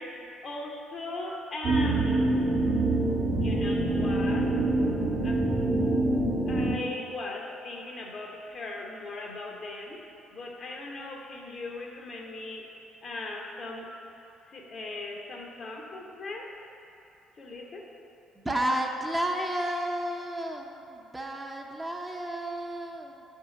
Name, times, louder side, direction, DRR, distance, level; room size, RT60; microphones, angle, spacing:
voice 1, 0.0-2.4 3.4-4.6 5.2-5.5 6.5-10.0 10.3-12.7 13.0-13.9 14.5-16.5 17.4-17.9, left 2 dB, 50° left, 0 dB, 0.8 m, -39 dB
sound 1, 1.6-6.7, right 2 dB, 50° right, 0.9 m, -25 dB
voice 2, 18.4-23.2, right 1 dB, 15° right, 1 dB, 0.6 m, -32 dB
7.5 x 2.8 x 5.0 m, 2.8 s
hypercardioid pair, 50°, 0 cm